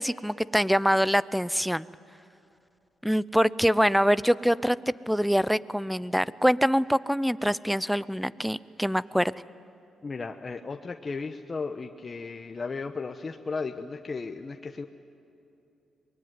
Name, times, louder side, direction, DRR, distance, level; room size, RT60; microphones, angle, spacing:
voice 1, 0.0-1.9 3.0-9.3, equal, ahead, 18 dB, 0.6 m, -24 dB
voice 2, 10.0-14.8, left 4 dB, 35° left, 5 dB, 1.0 m, -35 dB
24.0 x 21.5 x 9.6 m, 2.7 s
cardioid pair, 85°, 0 cm